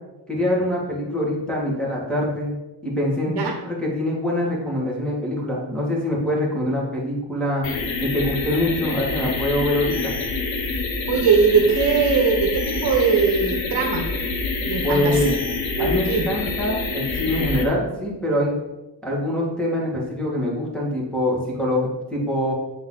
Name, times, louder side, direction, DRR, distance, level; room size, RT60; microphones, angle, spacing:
voice 1, 0.3-2.6 2.8-7.6 8.0-10.1 14.8-15.3 15.8-18.5 19.0-22.5, left 1 dB, ahead, -4 dB, 2.2 m, -24 dB
sound 1, 7.6-17.6, left 3 dB, 80° left, 1.2 m, -27 dB
voice 2, 11.1-14.1 14.7-15.3 15.8-16.3, right 5 dB, 60° right, 3 dB, 1.2 m, -20 dB
7.8 x 5.2 x 4.1 m, 1.0 s
cardioid pair, 115°, 45 cm